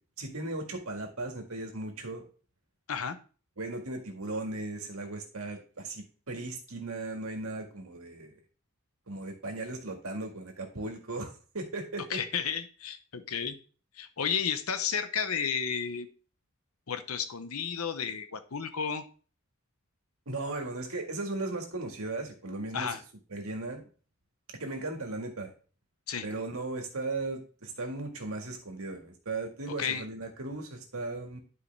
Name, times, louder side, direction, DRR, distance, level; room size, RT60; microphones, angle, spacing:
voice 1, 0.2-2.3 3.6-8.3 9.1-12.2 20.3-23.0 23.3-23.8 24.6-25.5 26.2-31.4, right 2 dB, 85° right, 2 dB, 1.9 m, -37 dB
voice 2, 12.1-13.6 14.0-16.1 16.9-19.0 22.7-23.0 26.1-26.3 29.8-30.0, left 7 dB, 90° left, 10 dB, 0.9 m, -32 dB
11.0 x 4.9 x 3.4 m, 0.39 s
head